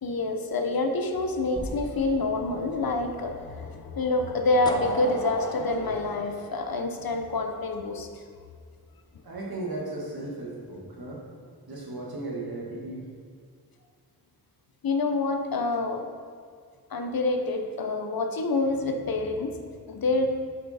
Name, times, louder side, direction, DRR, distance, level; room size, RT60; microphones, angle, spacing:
voice 1, 0.0-8.2 14.8-16.0 16.9-19.6 19.9-20.3, left 2 dB, 70° left, 5 dB, 0.8 m, -27 dB
sound 1, 1.6-5.8, right 1 dB, 20° right, 1.7 m, -44 dB
sound 2, 4.7-7.5, left 1 dB, 10° left, 0.6 m, -36 dB
voice 2, 9.2-11.2 11.7-13.1, right 2 dB, 75° right, -3 dB, 1.7 m, -36 dB
6.4 x 5.7 x 4.2 m, 2.1 s
wide cardioid pair, 80°, 37 cm